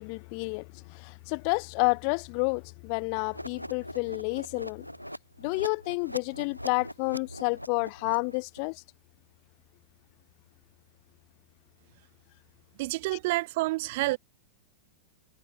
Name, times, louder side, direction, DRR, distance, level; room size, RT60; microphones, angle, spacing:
voice 1, 0.0-4.9 5.4-8.8, left 40 dB or more, 45° left, 2.4 m, -30 dB
sound 1, 3.3-8.6, equal, 90° left, 5.9 m, -42 dB
voice 2, 12.8-14.2, right 21 dB, 50° right, 5.3 m, -28 dB
figure-of-eight pair, 90°, 0 cm